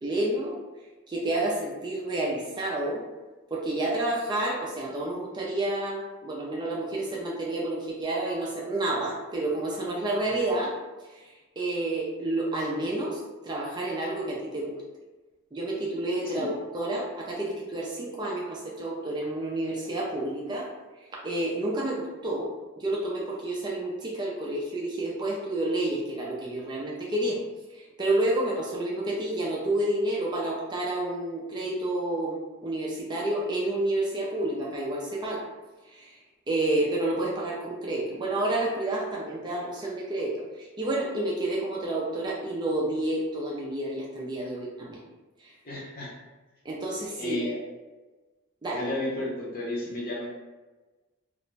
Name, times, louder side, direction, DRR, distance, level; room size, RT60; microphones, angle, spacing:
voice 1, 0.0-0.6 1.1-3.0 3.5-10.7 11.1-14.8 15.5-20.7 21.0-27.4 27.7-35.5 35.8-36.2 36.5-45.0 45.4-45.5 46.6-47.4 48.6-48.9, right 1 dB, 20° right, -3 dB, 0.3 m, -30 dB
voice 2, 45.6-46.1 47.2-47.6 48.7-50.3, left 1 dB, 40° left, -5 dB, 0.7 m, -33 dB
2.4 x 2.1 x 3.1 m, 1.2 s
head